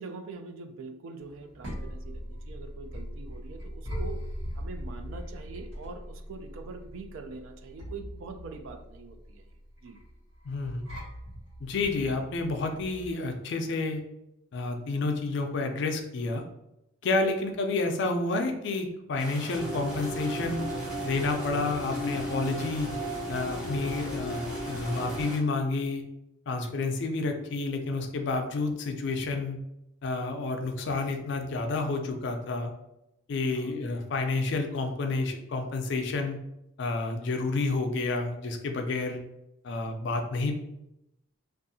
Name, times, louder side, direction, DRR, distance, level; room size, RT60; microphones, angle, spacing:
voice 1, 0.0-4.3 4.6-9.4 9.8-10.0 15.3-15.5 26.8-26.9 33.5-33.7 39.8-40.0, right 4 dB, 70° right, 7 dB, 0.3 m, -44 dB
sound 1, 1.2-13.1, equal, 90° right, 1.5 m, -40 dB
voice 2, 10.4-10.9 11.6-14.0 14.5-16.4 17.0-20.7 21.0-22.9 23.3-26.0 26.5-29.6 30.0-32.7 33.3-36.4 36.8-39.2 39.6-40.5, left 3 dB, 55° left, 4 dB, 0.3 m, -30 dB
sound 2, 19.2-25.4, equal, 5° right, 0.8 m, -43 dB
sound 3, 19.5-25.3, equal, 40° right, 0.8 m, -35 dB
2.6 x 2.4 x 2.6 m, 0.86 s
head